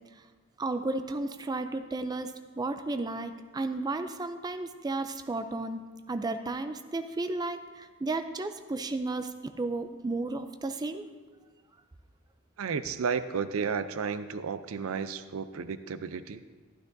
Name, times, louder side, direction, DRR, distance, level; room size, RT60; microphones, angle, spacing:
voice 1, 0.6-5.8 6.1-11.0, right 2 dB, 20° right, 8 dB, 0.4 m, -33 dB
voice 2, 12.6-16.4, right 6 dB, 85° right, 12 dB, 0.5 m, -32 dB
12.5 x 12.0 x 2.6 m, 1.4 s
head